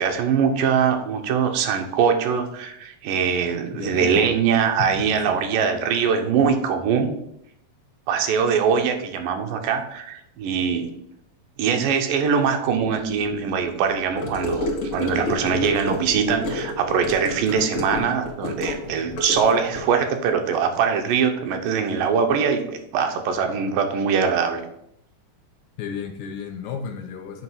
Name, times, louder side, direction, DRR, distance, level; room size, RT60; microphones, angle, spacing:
voice 1, 0.0-7.1 8.1-10.9 11.6-24.6, right 6 dB, 90° right, 5 dB, 2.5 m, -22 dB
voice 2, 3.7-4.3 4.8-5.4 25.8-27.4, left 7 dB, 75° left, 4 dB, 2.0 m, -33 dB
Gurgling / Car passing by / Sink (filling or washing), 14.2-19.8, left 2 dB, 50° left, 2.0 m, -29 dB
7.7 x 3.0 x 5.6 m, 0.77 s
omnidirectional pair, 3.7 m